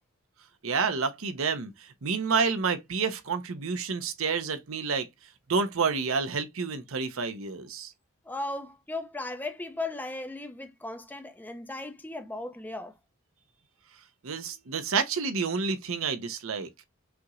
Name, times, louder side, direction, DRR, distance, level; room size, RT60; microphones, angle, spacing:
voice 1, 0.6-5.1 5.5-7.9 14.2-16.7, right 5 dB, 70° right, 0.7 m, -29 dB
voice 2, 8.3-13.0, left 2 dB, 10° left, 0.5 m, -36 dB
5.8 x 2.9 x 2.5 m
head